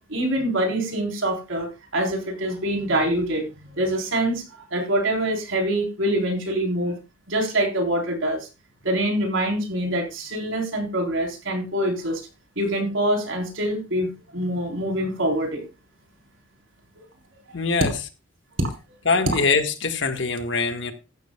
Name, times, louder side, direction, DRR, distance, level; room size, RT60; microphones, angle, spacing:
voice 1, 0.1-4.4 4.7-7.0 7.3-8.5 8.8-12.2 12.6-15.6 18.6-18.7, right 1 dB, 80° right, 3.8 m, -25 dB
voice 2, 17.5-17.9 19.0-20.9, left 4 dB, 65° left, 1.6 m, -23 dB
14.5 x 13.0 x 2.3 m
head